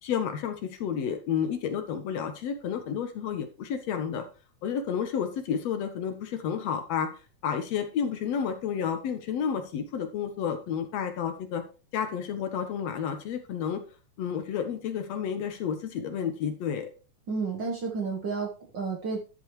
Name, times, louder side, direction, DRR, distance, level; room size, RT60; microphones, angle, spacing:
voice 1, 0.0-4.2 4.6-7.1 7.4-11.6 11.9-13.8 14.2-16.9, left 7 dB, 70° left, 7 dB, 2.1 m, -31 dB
voice 2, 17.3-19.2, right 4 dB, 50° right, 1 dB, 1.5 m, -31 dB
11.5 x 7.7 x 3.1 m, 0.35 s
omnidirectional pair, 3.3 m